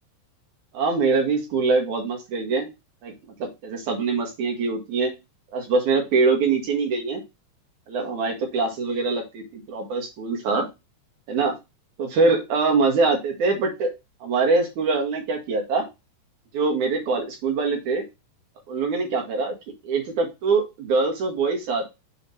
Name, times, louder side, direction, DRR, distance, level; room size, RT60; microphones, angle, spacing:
voice 1, 0.7-2.7 3.0-3.1 3.4-5.1 5.5-7.2 7.9-10.7 11.3-11.6 12.0-13.9 14.2-15.9 16.5-18.1 18.7-19.6 19.8-21.9, right 4 dB, 70° right, 2 dB, 1.9 m, -23 dB
7.1 x 2.9 x 5.4 m, 0.24 s
omnidirectional pair, 4.8 m